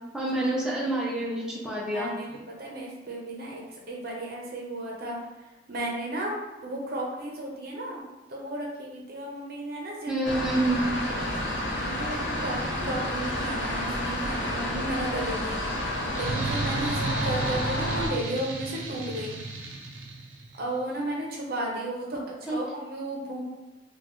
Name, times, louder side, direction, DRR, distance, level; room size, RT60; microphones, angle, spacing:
voice 1, 0.1-2.1 10.1-10.8 22.5-22.6, right 1 dB, 5° right, -6 dB, 0.6 m, -27 dB
voice 2, 1.8-5.2 5.7-6.3 6.6-8.0 8.3-10.2 11.1-11.2 11.7-12.6 12.8-15.6 16.1-19.4 20.6-23.4, right 1 dB, 55° right, -2 dB, 0.8 m, -34 dB
sound 1, 10.2-18.1, left 1 dB, 80° left, 1.1 m, -30 dB
sound 2, 16.1-20.6, right 3 dB, 90° right, 0.7 m, -33 dB
4.2 x 2.3 x 3.1 m, 1.1 s
head